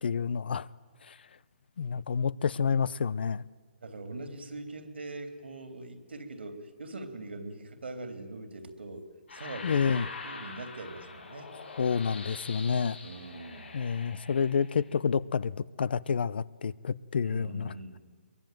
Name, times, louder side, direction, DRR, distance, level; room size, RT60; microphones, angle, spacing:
voice 1, 0.0-0.7 1.1-1.2 1.8-3.4 9.6-10.0 11.8-13.0 13.7-17.7, left 6 dB, 65° left, 0.7 m, -29 dB
voice 2, 3.8-11.5 13.0-13.8 17.2-18.0, right 2 dB, 80° right, 3.3 m, -42 dB
sound 1, 9.3-15.0, left 4 dB, 85° left, 6.2 m, -44 dB
22.5 x 22.5 x 9.2 m
hypercardioid pair, 140°, 6 cm